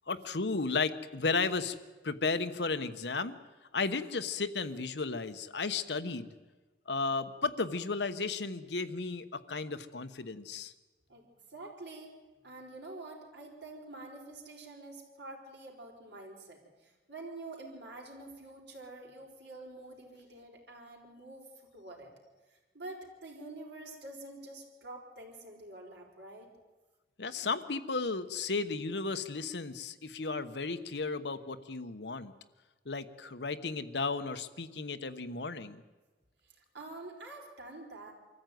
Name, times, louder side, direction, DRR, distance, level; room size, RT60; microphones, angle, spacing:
voice 1, 0.1-1.8 2.0-3.3 3.7-6.3 6.9-10.7 27.2-32.3 32.8-35.8, left 4 dB, 70° left, 11 dB, 1.1 m, -34 dB
voice 2, 11.1-12.1 12.4-21.4 21.7-22.1 22.7-26.5 36.4-38.1, right 2 dB, 75° right, 0 dB, 4.9 m, -47 dB
24.5 x 14.0 x 9.3 m, 1.2 s
head